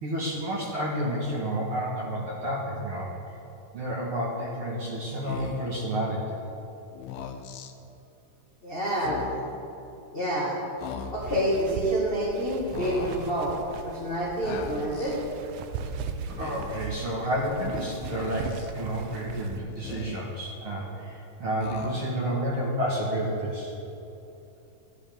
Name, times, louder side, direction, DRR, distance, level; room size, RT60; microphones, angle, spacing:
voice 1, 0.0-3.1 3.7-6.5 16.3-23.7, right 1 dB, 55° right, -4 dB, 1.6 m, -30 dB
Speech, 5.2-5.8 6.9-7.7 8.9-9.6 10.8-11.5 12.7-13.4 14.4-15.2 16.2-16.9 18.0-18.7 19.6-20.5 21.6-22.3, left 7 dB, 85° left, 1.7 m, -39 dB
voice 2, 8.6-9.2 10.1-10.6 11.1-15.2, right 1 dB, 35° left, -6 dB, 0.8 m, -28 dB
sound 1, 11.2-19.6, right 6 dB, 80° right, 2.0 m, -39 dB
12.5 x 11.0 x 3.5 m, 2.9 s
omnidirectional pair, 3.8 m